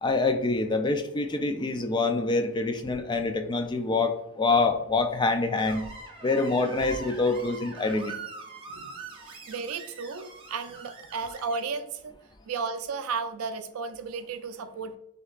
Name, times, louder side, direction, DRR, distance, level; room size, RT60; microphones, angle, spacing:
voice 1, 0.0-5.9 6.2-8.1, left 3 dB, 20° left, 7 dB, 0.3 m, -26 dB
Screech, 5.6-11.6, right 3 dB, 25° right, 0.7 m, -43 dB
voice 2, 9.5-12.1 12.5-15.0, right 5 dB, 80° right, 10 dB, 0.4 m, -34 dB
6.5 x 2.9 x 2.4 m, 0.85 s
head